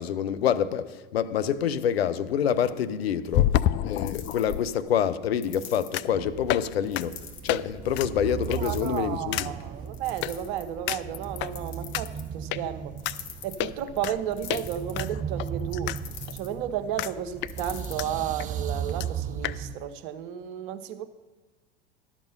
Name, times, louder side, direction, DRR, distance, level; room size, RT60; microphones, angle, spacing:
voice 1, 0.0-3.5 3.8-7.2 7.4-9.5, left 9 dB, 80° left, 0.8 m, -27 dB
sound 1, 0.8-0.9 3.3-4.6 5.9-6.2 6.5-6.7 6.9-7.0 7.5-7.6 7.9-8.1 8.5-8.8 9.3-9.5 10.2-10.3 10.9-11.5 11.9-12.0 12.5-12.6 13.0-13.2 13.6-14.2 14.5-14.6 14.9-16.0 16.3-16.4 17.0-17.1 17.4-18.1 18.4-18.5 18.7-18.8 19.0-19.1 19.4-19.6, left 13 dB, 40° left, 0.4 m, -28 dB
sound 2, 1.4-18.9, left 7 dB, 60° left, 1.9 m, -48 dB
sound 3, 6.1-19.7, right 8 dB, 25° right, 0.5 m, -37 dB
voice 2, 8.6-12.9 13.4-16.0 16.3-21.1, right 10 dB, 60° right, 1.0 m, -33 dB
12.0 x 7.5 x 5.2 m
hypercardioid pair, 85°, 30 cm